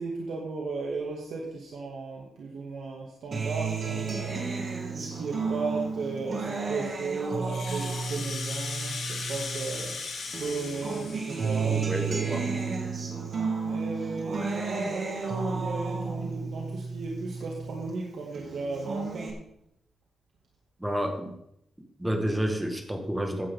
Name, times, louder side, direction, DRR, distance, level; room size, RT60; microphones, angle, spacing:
voice 1, 0.0-4.5 4.9-9.9 10.4-12.8 13.6-19.3, right 3 dB, 65° right, -2 dB, 2.2 m, -35 dB
Acoustic guitar, 3.3-10.0 10.3-17.9 18.3-19.3, right 4 dB, 35° right, 2.2 m, -32 dB
Rattle (instrument), 7.3-12.1, left 4 dB, 55° left, 3.4 m, -37 dB
voice 2, 11.7-12.4 20.8-21.3 22.0-23.5, equal, 5° right, 4 dB, 1.6 m, -29 dB
15.5 x 10.5 x 3.7 m, 0.78 s
wide cardioid pair, 180°, 0 cm